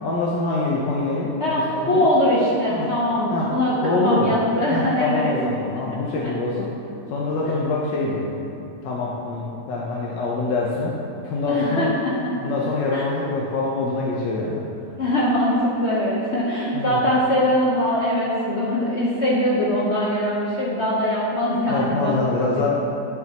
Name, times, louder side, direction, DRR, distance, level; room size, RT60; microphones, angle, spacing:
voice 1, 0.0-1.3 1.7-2.1 2.7-2.9 3.3-3.5 3.8-4.3 4.7-6.7 7.1-10.9 11.2-11.9 12.4-14.6 16.7-17.0 21.7-22.7, left 3 dB, 75° left, -4 dB, 1.4 m, -25 dB
voice 2, 1.4-6.3 11.5-12.5 12.9-13.0 15.0-22.3, left 1 dB, 50° left, -6 dB, 1.0 m, -22 dB
10.5 x 6.2 x 2.9 m, 2.7 s
omnidirectional pair, 1.9 m